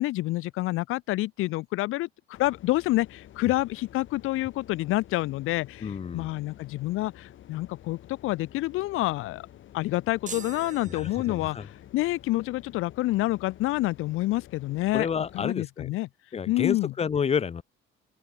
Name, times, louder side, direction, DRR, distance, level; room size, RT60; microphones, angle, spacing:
voice 1, 0.0-9.5 9.7-15.1 15.3-16.1 16.5-16.9, left 18 dB, 85° left, 0.5 m, -28 dB
sound 1, 2.4-15.5, left 12 dB, 65° left, 7.5 m, -50 dB
voice 2, 5.8-6.3 10.9-11.7 14.9-15.9 16.3-17.6, left 7 dB, 30° left, 0.8 m, -30 dB
sound 2, 10.3-11.8, right 6 dB, 35° right, 3.6 m, -43 dB
open air
cardioid pair, 130°, 21 cm